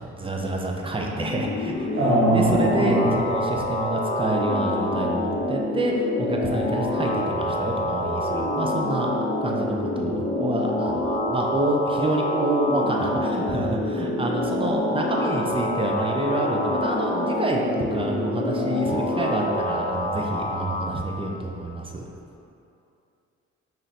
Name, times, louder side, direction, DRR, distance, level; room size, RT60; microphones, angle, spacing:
voice 1, 0.0-9.1 9.4-22.1, right 1 dB, 20° right, 0 dB, 0.4 m, -28 dB
sound 1, 1.0-20.9, left 1 dB, 35° left, 0.5 m, -26 dB
voice 2, 1.9-3.1, right 1 dB, 40° right, -6 dB, 1.1 m, -21 dB
3.2 x 2.7 x 4.0 m, 2.7 s
cardioid pair, 90°, 30 cm